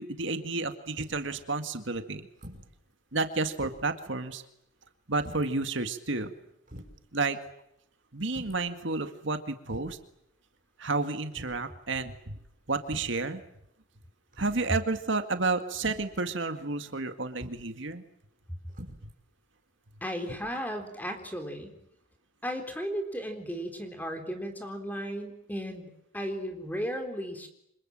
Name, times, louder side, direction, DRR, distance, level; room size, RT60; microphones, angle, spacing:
voice 1, 0.0-2.3 3.1-4.4 5.1-6.3 7.1-7.4 8.1-10.0 10.8-12.4 12.7-13.4 14.4-18.0, right 3 dB, 70° right, 8 dB, 2.0 m, -31 dB
sound 1, 1.0-1.3 2.4-2.7 3.1-3.2 3.6-4.0 5.2-5.5 6.2-6.3 6.7-7.0 8.3-8.7 9.7-10.1 11.3-11.7 12.8-13.3 14.3-14.7 15.8-16.2 17.4-17.6 18.7-19.1 20.2-20.4, equal, 40° right, 5.7 m, -45 dB
voice 2, 20.0-21.7 22.4-27.5, equal, 10° left, 5 dB, 3.9 m, -35 dB
28.5 x 26.0 x 7.7 m, 0.77 s
head